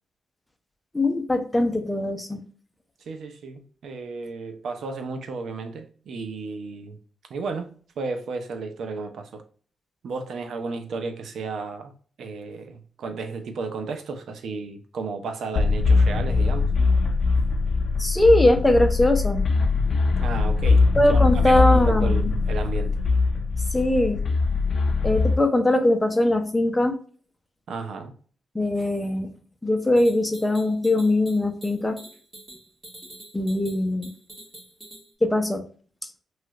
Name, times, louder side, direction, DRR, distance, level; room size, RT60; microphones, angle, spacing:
voice 1, 0.9-2.4 18.0-19.5 21.0-22.3 23.7-24.2 25.0-27.0 28.5-29.3 29.6-32.0 33.3-34.1 35.2-35.6, left 1 dB, 10° left, 0.6 m, -21 dB
voice 2, 3.1-7.0 7.3-7.7 8.0-9.4 10.0-11.9 12.2-16.7 20.2-20.8 21.1-23.0 27.7-28.1, right 4 dB, 75° right, 0.6 m, -33 dB
sound 1, 15.6-25.4, left 4 dB, 50° left, 0.6 m, -21 dB
sound 2, 30.0-35.1, right 1 dB, 20° right, 1.4 m, -46 dB
3.0 x 2.4 x 2.9 m
cardioid pair, 100°, 0 cm